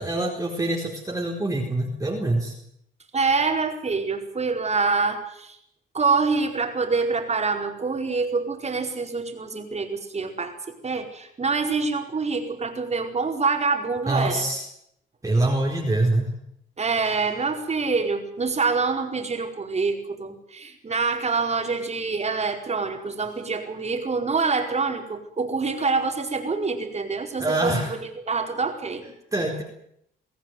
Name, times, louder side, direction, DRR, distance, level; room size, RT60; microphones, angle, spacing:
voice 1, 0.0-2.5 14.1-14.6 15.2-16.3 27.4-27.9 29.3-29.6, right 2 dB, 15° right, -1 dB, 4.4 m, -24 dB
voice 2, 3.1-5.6 5.9-10.5 10.8-14.5 16.8-29.0, right 4 dB, 35° right, 4 dB, 4.7 m, -26 dB
23.5 x 16.0 x 9.2 m, 0.74 s
cardioid pair, 90°, 20 cm